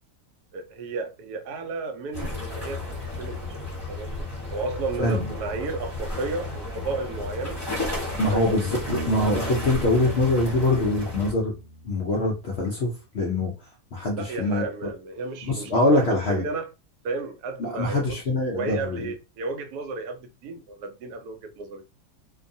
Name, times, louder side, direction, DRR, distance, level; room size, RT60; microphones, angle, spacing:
voice 1, 0.5-2.9 3.2-3.6 3.9-4.1 4.5-7.6 8.3-8.8 14.1-16.7 17.0-18.2 18.5-21.8, right 3 dB, 75° right, 1.1 m, -33 dB
sound 1, 2.1-11.3, left 2 dB, 15° left, 1.2 m, -33 dB
voice 2, 8.2-8.8 9.1-11.5 11.8-13.5 13.9-14.7 15.5-16.4 17.6-19.1, left 2 dB, 65° left, 0.6 m, -23 dB
Bass guitar, 8.9-12.4, right 2 dB, 50° right, 0.8 m, -37 dB
2.6 x 2.2 x 2.6 m
omnidirectional pair, 1.7 m